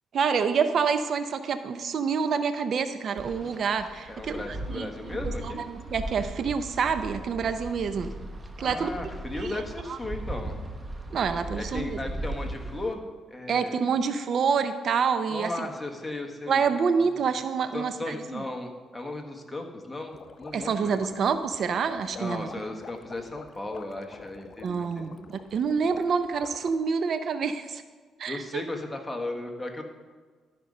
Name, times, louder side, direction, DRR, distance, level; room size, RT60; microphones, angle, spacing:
voice 1, 0.1-4.4 4.7-5.2 5.4-8.1 8.6-9.6 9.9-10.0 11.1-12.0 13.5-15.7 16.5-18.4 20.5-22.5 24.6-27.8 28.2-28.6, right 6 dB, 60° right, 10 dB, 0.5 m, -27 dB
Wind, 3.2-12.9, right 1 dB, 20° right, 1.0 m, -38 dB
voice 2, 4.1-5.6 8.6-10.6 11.6-13.9 15.3-16.6 17.7-21.0 22.2-25.2 28.3-29.8, left 2 dB, 10° left, 1 dB, 1.4 m, -36 dB
sound 1, 20.1-26.7, left 5 dB, 50° left, 0.6 m, -47 dB
13.0 x 5.2 x 5.4 m, 1.5 s
cardioid pair, 90°, 0 cm